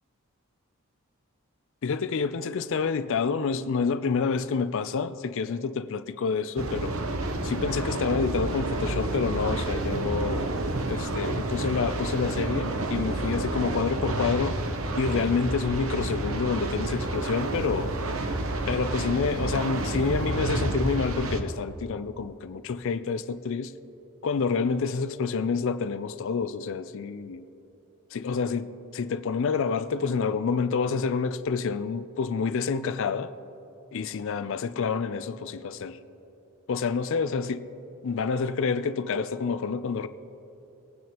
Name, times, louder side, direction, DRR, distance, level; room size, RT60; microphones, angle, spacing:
voice 1, 1.8-7.0 7.4-10.6 10.9-14.6 15.0-17.9 18.7-23.7 24.2-27.4 28.1-33.3 33.9-36.0 36.7-37.7 38.0-40.1, left 5 dB, 60° left, 0.4 m, -28 dB
sound 1, 6.6-21.4, right 2 dB, 70° right, 0.9 m, -30 dB
20.5 x 9.2 x 3.0 m
head